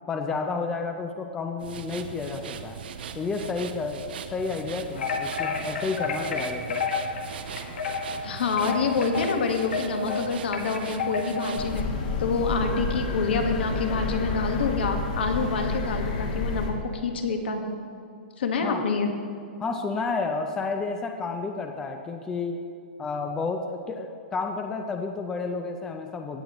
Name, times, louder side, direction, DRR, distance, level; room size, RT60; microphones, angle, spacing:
voice 1, 0.1-2.8 3.1-6.8 18.6-18.8 19.6-22.6 23.0-26.4, left 4 dB, 10° left, 4 dB, 0.4 m, -31 dB
sound 1, 1.6-11.8, right 6 dB, 60° right, 0.8 m, -39 dB
sound 2, 5.0-11.6, left 5 dB, 85° left, 1.6 m, -31 dB
voice 2, 8.2-11.9 12.2-17.7 18.4-19.1, left 4 dB, 70° left, 5 dB, 1.4 m, -27 dB
sound 3, 11.6-16.7, left 4 dB, 45° left, 1.4 m, -30 dB
16.5 x 8.6 x 3.0 m, 2.6 s
hypercardioid pair, 170°, 6 cm